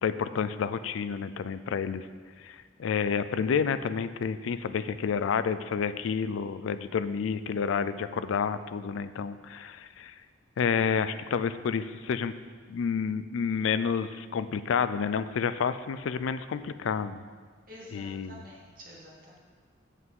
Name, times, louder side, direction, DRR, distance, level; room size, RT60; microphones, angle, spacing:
voice 1, 0.0-2.1 2.4-10.1 10.6-12.3 12.7-17.2 17.9-18.4, left 6 dB, 85° left, 13 dB, 0.4 m, -29 dB
voice 2, 17.7-19.4, equal, 45° right, -5 dB, 2.0 m, -49 dB
8.2 x 7.8 x 3.7 m, 1.5 s
head